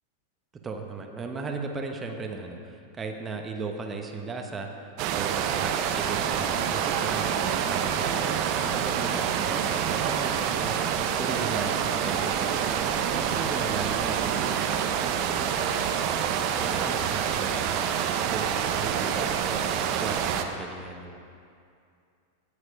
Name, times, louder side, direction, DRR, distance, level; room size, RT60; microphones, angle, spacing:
voice 1, 0.6-16.0 16.5-17.8 18.3-21.2, right 4 dB, 20° right, 3 dB, 1.2 m, -37 dB
sound 1, 5.0-20.4, right 8 dB, 40° right, 0.8 m, -27 dB
19.0 x 6.6 x 5.0 m, 2.4 s
figure-of-eight pair, 90°, 0 cm